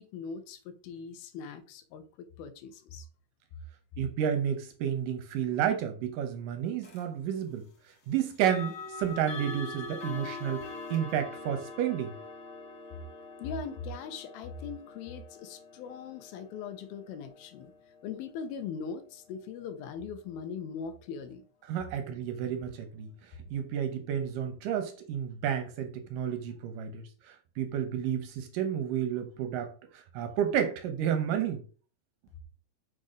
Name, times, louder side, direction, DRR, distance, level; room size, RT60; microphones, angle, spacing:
voice 1, 0.0-3.1 13.4-17.7 18.0-21.4, left 5 dB, 80° left, 2.7 m, -40 dB
voice 2, 4.0-7.7 8.1-12.2 21.7-23.1 23.5-31.6, right 9 dB, 75° right, 2.2 m, -31 dB
sound 1, 6.8-7.1 8.4-19.2, left 3 dB, 50° left, 1.6 m, -44 dB
6.2 x 4.1 x 5.0 m
omnidirectional pair, 4.3 m